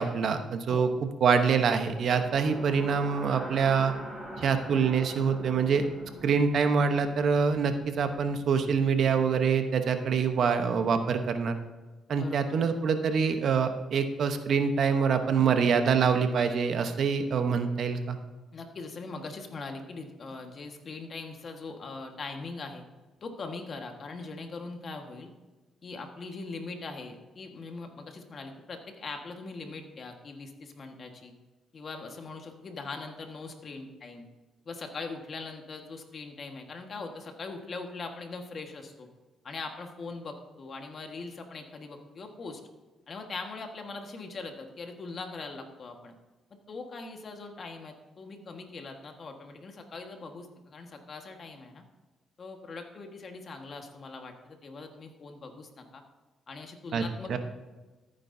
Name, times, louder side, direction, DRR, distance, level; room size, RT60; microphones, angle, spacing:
voice 1, 0.0-3.9 4.4-5.9 6.2-11.6 12.1-18.2 56.9-57.0 57.3-57.4, right 6 dB, 60° right, 7 dB, 1.0 m, -25 dB
Eerie Moment, 1.8-9.9, right 1 dB, ahead, 2.8 m, -44 dB
voice 2, 12.1-12.4 18.5-22.8 23.2-25.3 25.8-31.3 31.7-34.3 34.6-39.1 39.4-42.6 43.1-46.1 46.7-51.8 52.4-56.0 56.5-57.4, left 3 dB, 45° left, 4 dB, 1.6 m, -41 dB
14.5 x 9.1 x 2.7 m, 1.2 s
cardioid pair, 90°, 0 cm